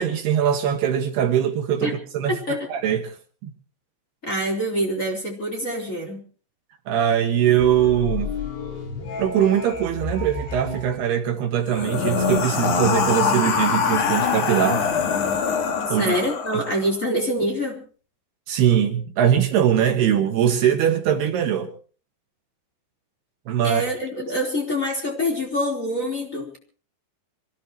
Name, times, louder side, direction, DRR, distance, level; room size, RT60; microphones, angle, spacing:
voice 1, 0.0-2.4 2.7-3.1 3.4-3.5 6.9-8.3 9.2-14.8 15.9-16.2 18.5-21.7 23.5-23.8, right 9 dB, 70° right, 3.3 m, -21 dB
voice 2, 2.3-2.7 4.2-6.2 15.9-17.8 23.6-26.6, equal, 20° left, 3.9 m, -25 dB
sound 1, 7.6-10.9, left 4 dB, 80° left, 7.3 m, -32 dB
sound 2, 11.7-16.9, left 5 dB, 50° left, 3.0 m, -23 dB
25.5 x 17.0 x 3.1 m
omnidirectional pair, 5.1 m